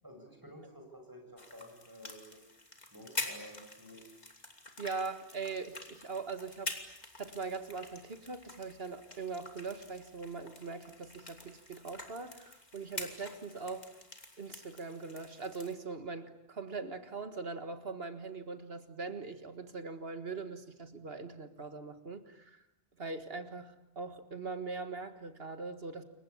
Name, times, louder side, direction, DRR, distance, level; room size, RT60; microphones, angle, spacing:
voice 1, 0.0-2.5 2.9-4.0, equal, 20° right, 2 dB, 7.4 m, -52 dB
sound 1, 1.4-15.7, left 2 dB, 40° left, 3.1 m, -46 dB
voice 2, 4.8-6.8 7.2-13.9 14.4-22.6 23.0-26.0, right 4 dB, 60° right, 9 dB, 1.9 m, -41 dB
29.0 x 23.5 x 8.6 m, 0.88 s
omnidirectional pair, 1.1 m